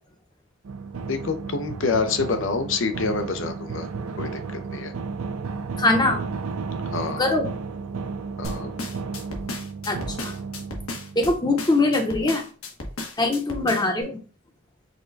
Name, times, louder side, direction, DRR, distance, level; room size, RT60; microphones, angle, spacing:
sound 1, 0.6-11.6, right 4 dB, 85° right, 0.5 m, -33 dB
voice 1, 1.1-3.9 4.2-4.9 6.9-7.4 8.4-8.7, left 4 dB, 60° left, 8 dB, 0.6 m, -27 dB
voice 2, 5.8-6.2 7.2-7.5 9.9-10.3 11.2-12.4 13.2-14.2, left 2 dB, 20° left, 4 dB, 0.8 m, -22 dB
sound 2, 8.4-14.0, left 2 dB, 85° left, 1.1 m, -34 dB
5.1 x 2.2 x 3.9 m, 0.37 s
head